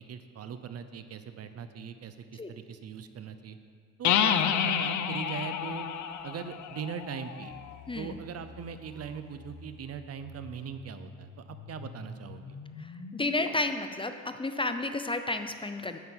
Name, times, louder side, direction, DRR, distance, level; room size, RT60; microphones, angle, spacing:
voice 1, 0.0-3.6 4.0-5.9 6.2-7.5 8.0-12.6, right 7 dB, 55° right, 10 dB, 0.7 m, -40 dB
sound 1, 4.0-7.7, left 9 dB, 70° left, 0.6 m, -29 dB
sound 2, 7.5-13.5, left 5 dB, 50° left, 0.9 m, -47 dB
voice 2, 13.1-14.1 14.4-16.0, left 2 dB, 15° left, 8 dB, 0.5 m, -31 dB
9.3 x 5.7 x 7.9 m, 2.1 s
cardioid pair, 90°, 30 cm